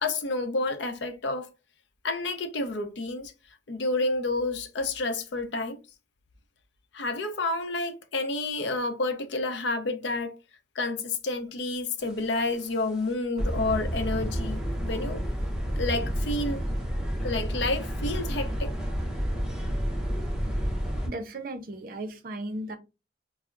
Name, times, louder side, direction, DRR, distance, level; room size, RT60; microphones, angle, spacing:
voice 1, 0.0-1.5 2.0-3.3 3.7-5.8 6.9-10.3 10.8-15.2 15.8-16.7 17.2-18.7, left 2 dB, 75° left, 0.6 m, -29 dB
sound 1, 12.1-12.5 12.9-13.0 13.4-21.1, equal, 5° right, 0.5 m, -30 dB
voice 2, 21.1-22.8, right 1 dB, 50° right, 0.5 m, -36 dB
4.5 x 2.0 x 2.4 m
head